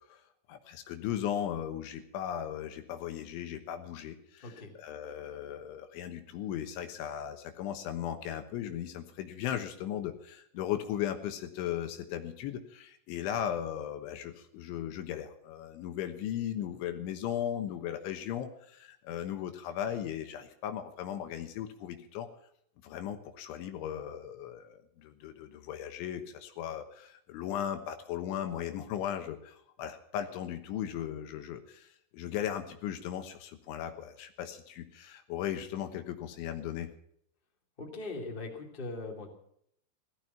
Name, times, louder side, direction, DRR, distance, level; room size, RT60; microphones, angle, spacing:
voice 1, 0.5-22.3 22.8-36.9, left 10 dB, 75° left, 7 dB, 3.5 m, -37 dB
voice 2, 4.4-4.7 37.8-39.3, left 3 dB, 15° left, 1 dB, 2.0 m, -40 dB
17.0 x 13.5 x 5.8 m, 0.69 s
omnidirectional pair, 5.7 m